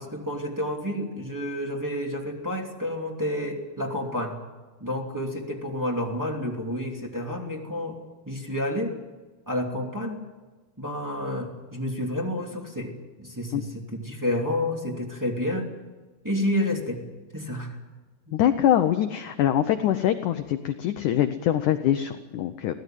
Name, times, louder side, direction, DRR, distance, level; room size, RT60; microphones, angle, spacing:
voice 1, 0.0-4.4 4.8-9.0 9.5-10.2 10.8-12.9 13.2-15.7 16.2-17.0 17.3-17.8 18.3-18.4, left 1 dB, 5° right, 0 dB, 1.9 m, -30 dB
voice 2, 18.3-22.7, left 11 dB, 85° left, 8 dB, 1.7 m, -23 dB
23.5 x 17.0 x 9.3 m, 1.3 s
omnidirectional pair, 4.7 m